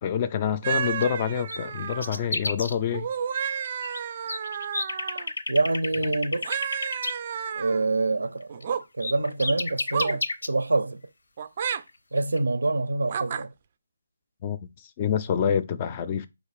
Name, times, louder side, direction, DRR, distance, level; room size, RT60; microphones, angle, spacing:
voice 1, 0.0-3.5 6.0-6.2 14.4-14.7 15.0-16.3, left 8 dB, 30° left, 0.4 m, -27 dB
sound 1, 0.6-2.3 2.9-5.3 6.4-7.8 8.5-8.8 9.9-10.2 11.4-11.8 13.1-13.4, right 7 dB, 40° right, 0.3 m, -31 dB
sound 2, 0.8-1.0 1.3-2.7 3.4-4.0 4.3-7.1 8.6-8.7 9.0-10.5 11.9-12.0 12.2-12.4, left 3 dB, 80° left, 0.5 m, -31 dB
voice 2, 5.5-6.5 7.6-11.0 12.1-13.5, right 3 dB, 90° right, 0.5 m, -26 dB
4.4 x 2.4 x 4.8 m
hypercardioid pair, 160°, 0 cm